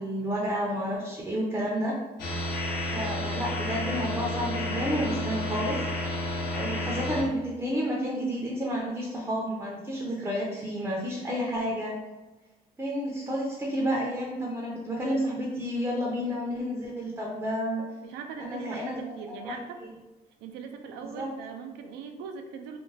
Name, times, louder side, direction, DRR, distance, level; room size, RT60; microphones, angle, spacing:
voice 1, 0.0-1.9 2.9-5.8 6.5-11.9 12.8-17.8 18.4-19.0 19.4-19.5 19.8-19.9 21.0-21.3, equal, 15° right, -3 dB, 0.5 m, -30 dB
sound 1, 2.2-7.2, left 1 dB, 65° left, 0.8 m, -31 dB
voice 2, 18.0-19.8 20.4-22.8, right 6 dB, 90° right, 5 dB, 0.4 m, -40 dB
2.4 x 2.1 x 3.2 m, 1.1 s
cardioid pair, 110°, 17 cm